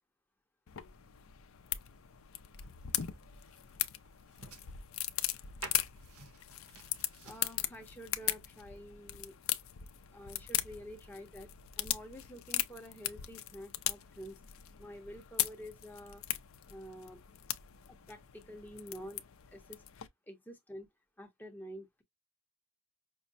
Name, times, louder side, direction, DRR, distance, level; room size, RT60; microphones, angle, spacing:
sound 1, 0.7-20.1, left 13 dB, 65° left, 0.5 m, -39 dB
sound 2, 1.7-7.6, right 3 dB, 80° right, 1.1 m, -53 dB
voice 1, 7.2-9.4 10.1-11.5 11.8-14.4 14.8-16.2 16.7-17.2 17.9-19.2 19.5-19.8 20.3-20.9 21.2-22.0, equal, 10° left, 0.6 m, -48 dB
5.4 x 2.0 x 2.6 m
head